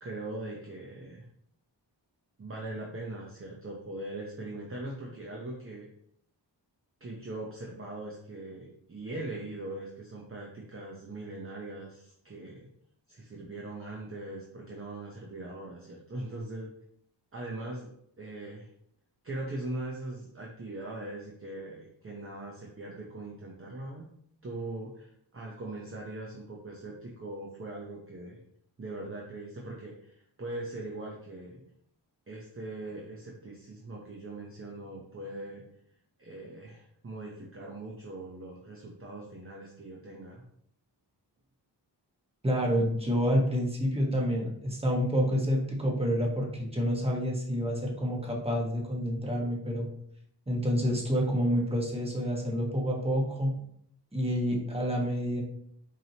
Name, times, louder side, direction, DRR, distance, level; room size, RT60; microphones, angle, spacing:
voice 1, 0.0-1.2 2.4-5.9 7.0-12.7 13.1-16.7 17.3-18.7 19.2-24.1 24.4-28.4 28.8-31.6 32.3-35.6 36.2-40.4, right 2 dB, 30° right, -2 dB, 0.8 m, -41 dB
voice 2, 42.4-49.9 50.5-53.6 54.1-55.4, equal, 15° right, -1 dB, 1.3 m, -28 dB
4.7 x 2.8 x 2.9 m, 0.68 s
cardioid pair, 55°, 43 cm